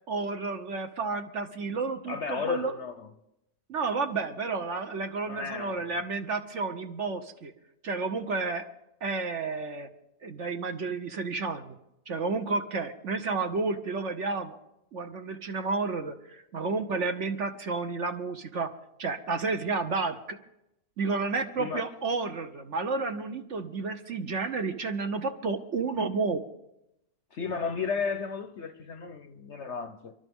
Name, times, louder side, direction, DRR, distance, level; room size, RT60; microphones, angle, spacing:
voice 1, 0.1-2.7 3.7-7.5 7.8-8.7 9.0-9.9 10.2-11.8 12.1-14.6 14.9-18.7 19.0-20.4 21.0-26.4, right 4 dB, 55° right, 1.1 m, -31 dB
voice 2, 2.1-3.1 5.3-6.0 21.6-21.9 27.3-30.1, left 5 dB, 55° left, 0.9 m, -34 dB
29.0 x 12.0 x 3.6 m
omnidirectional pair, 1.7 m